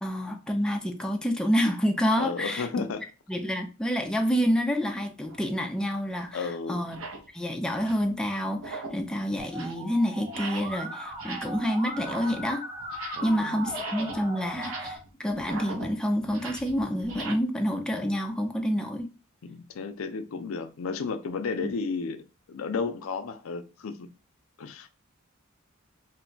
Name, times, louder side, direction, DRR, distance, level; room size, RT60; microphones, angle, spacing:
voice 1, 0.0-2.7 3.3-7.0 7.3-12.6 13.2-19.1 21.6-21.7, equal, 5° left, 0.4 m, -28 dB
voice 2, 2.2-3.1 6.3-6.9 13.2-13.7 19.4-24.1 24.6-24.9, left 4 dB, 75° left, 0.4 m, -33 dB
sound 1, 5.2-5.4 6.2-6.3 6.8-7.3 7.7-8.1 8.5-9.1 9.4-9.8 10.2-10.8 11.1-11.7 11.9-13.4 13.6-17.3, right 3 dB, 70° right, 0.7 m, -40 dB
Musical instrument, 9.4-15.0, equal, 20° right, 0.8 m, -38 dB
2.5 x 2.2 x 3.8 m
head